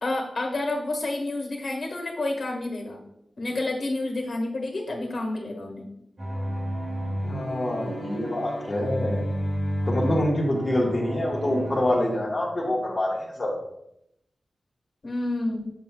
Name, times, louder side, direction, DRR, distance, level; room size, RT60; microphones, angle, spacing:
voice 1, 0.0-3.0 3.4-5.8 15.0-15.7, left 2 dB, 55° left, 1 dB, 1.7 m, -29 dB
sound 1, 6.2-11.9, equal, 50° right, 2.3 m, -31 dB
voice 2, 7.2-9.3 9.8-13.5, left 1 dB, 35° left, -7 dB, 1.5 m, -26 dB
7.4 x 7.0 x 2.4 m, 0.78 s
wide cardioid pair, 120°, 0 cm